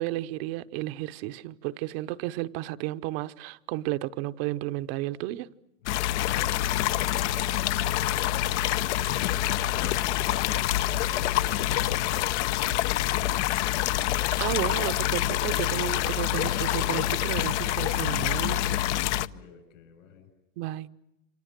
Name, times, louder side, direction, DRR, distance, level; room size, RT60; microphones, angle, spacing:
voice 1, 0.0-5.5 14.4-18.8 20.6-20.9, right 16 dB, 50° right, 1.0 m, -32 dB
sound 1, 5.9-19.3, left 13 dB, 60° left, 0.9 m, -26 dB
voice 2, 19.2-20.3, left 7 dB, 75° left, 7.1 m, -51 dB
29.0 x 25.0 x 7.5 m
supercardioid pair, 140°, 39 cm